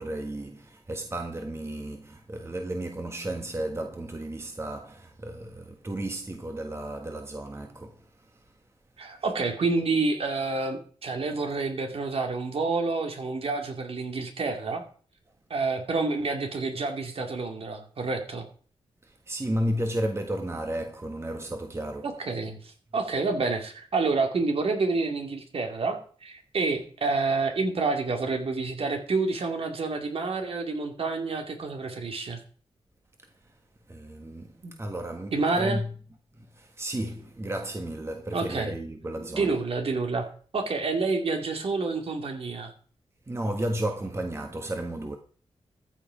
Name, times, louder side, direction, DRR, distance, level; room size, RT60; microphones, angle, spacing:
voice 1, 0.0-8.5 19.0-22.3 33.2-33.5 33.9-35.9 36.3-39.7 43.3-45.2, right 1 dB, 25° right, 1.5 m, -33 dB
voice 2, 9.0-14.8 15.5-18.5 22.0-32.4 34.6-34.7 35.3-35.8 38.3-38.7 39.2-40.3 40.5-42.7, right 3 dB, 65° right, 2.5 m, -28 dB
14.0 x 8.2 x 5.0 m
wide cardioid pair, 90°, 11 cm